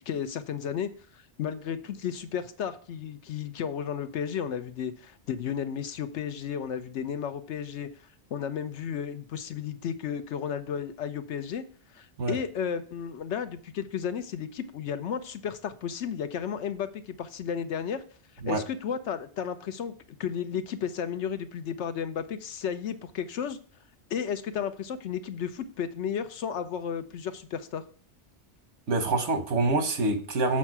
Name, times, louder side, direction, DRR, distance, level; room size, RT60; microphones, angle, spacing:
voice 1, 0.0-7.9 8.3-11.6 11.9-18.0 18.5-19.9 20.2-23.6 24.1-27.8, left 8 dB, 85° left, 10 dB, 1.0 m, -33 dB
voice 2, 28.9-30.6, right 3 dB, 90° right, 7 dB, 1.4 m, -26 dB
7.3 x 4.5 x 6.0 m, 0.42 s
omnidirectional pair, 1.2 m